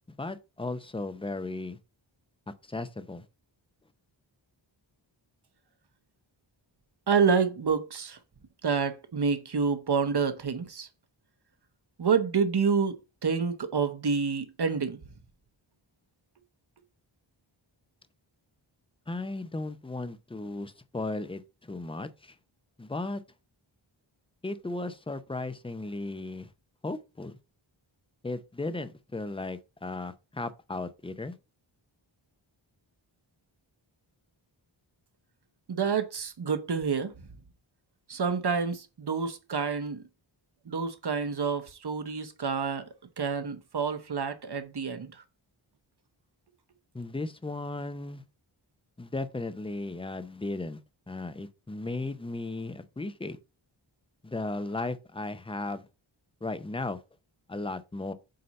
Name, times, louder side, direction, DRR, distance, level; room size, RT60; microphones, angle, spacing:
voice 1, 0.2-1.8 2.7-3.2 19.1-22.4 22.8-23.2 24.4-26.5 26.8-27.3 28.2-31.4 46.9-48.2 49.0-50.8 51.1-53.4 54.2-55.8 56.4-57.0 57.5-58.1, left 2 dB, 10° left, 0.6 m, -35 dB
voice 2, 7.1-8.2 8.6-10.9 12.0-15.0 35.7-37.1 38.1-40.0 40.7-42.8 43.2-45.1, right 5 dB, 55° right, 1.1 m, -28 dB
7.7 x 2.8 x 5.2 m
wide cardioid pair, 80°, 47 cm